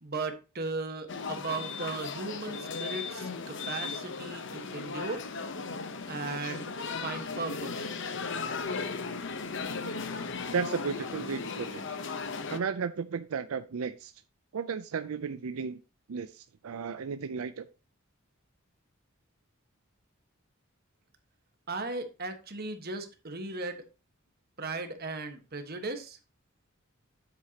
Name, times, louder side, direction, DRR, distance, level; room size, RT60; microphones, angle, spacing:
voice 1, 0.0-5.2 6.1-6.7 7.0-7.9 21.7-23.8 24.6-26.2, right 3 dB, 50° right, 7 dB, 1.4 m, -37 dB
sound 1, 1.1-12.6, left 4 dB, 60° left, 0.9 m, -36 dB
voice 2, 10.5-11.8 12.5-14.1 14.5-15.8 16.1-17.7, right 6 dB, 85° right, 10 dB, 0.5 m, -34 dB
9.6 x 8.1 x 2.9 m, 0.31 s
head